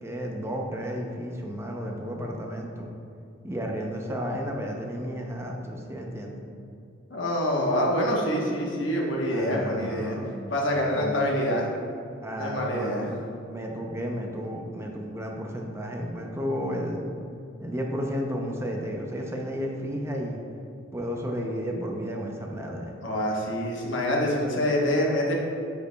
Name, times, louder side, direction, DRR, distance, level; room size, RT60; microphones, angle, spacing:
voice 1, 0.0-2.9 3.4-6.4 9.3-10.3 10.9-11.2 12.2-13.2 13.5-17.1 17.6-20.4 20.9-22.9, equal, 15° right, 0 dB, 0.5 m, -32 dB
voice 2, 7.1-10.2 10.5-11.7 12.4-13.0 23.0-25.3, equal, 75° left, -2 dB, 1.1 m, -26 dB
9.2 x 5.0 x 2.2 m, 2.5 s
head